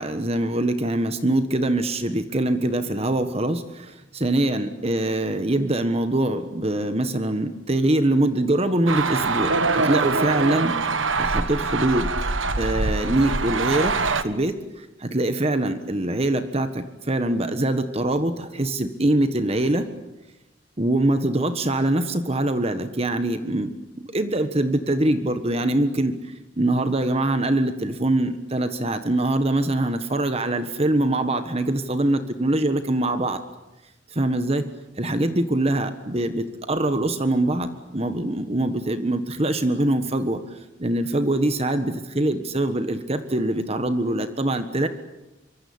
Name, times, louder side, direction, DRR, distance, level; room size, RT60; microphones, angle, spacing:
voice 1, 0.0-10.7 11.2-12.1 12.6-14.0 14.2-19.9 20.8-33.4 34.1-34.7 35.0-44.9, right 1 dB, 30° right, 9 dB, 1.4 m, -23 dB
sound 1, 8.9-14.2, right 3 dB, 75° right, 1.6 m, -24 dB
25.5 x 24.0 x 8.7 m, 0.97 s
head